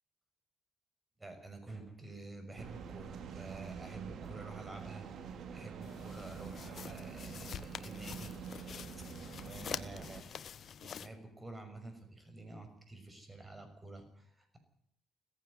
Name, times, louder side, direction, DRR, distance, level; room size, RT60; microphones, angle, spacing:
voice 1, 1.2-5.1 5.5-8.5 9.0-9.1 9.5-10.3 10.8-14.6, right 2 dB, 20° right, 7 dB, 6.2 m, -49 dB
sound 1, 2.6-10.2, right 6 dB, 70° right, 2.2 m, -46 dB
sound 2, 5.8-11.1, left 8 dB, 55° left, 1.2 m, -46 dB
17.5 x 15.5 x 9.7 m, 0.72 s
cardioid pair, 90°, 0 cm